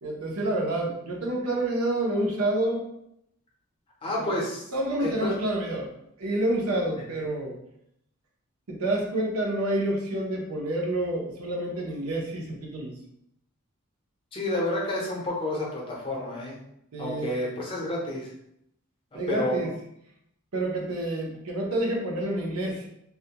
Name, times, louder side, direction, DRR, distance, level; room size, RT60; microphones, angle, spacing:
voice 1, 0.0-2.8 4.2-4.3 4.7-5.9 6.2-7.6 8.7-12.9 16.9-17.4 19.1-19.7 20.5-22.9, right 1 dB, 90° right, -1 dB, 0.7 m, -28 dB
voice 2, 4.0-4.7 5.0-5.4 14.3-16.6 17.0-18.3 19.3-19.7, left 1 dB, 25° left, -3 dB, 0.5 m, -30 dB
2.3 x 2.1 x 2.8 m, 0.76 s
head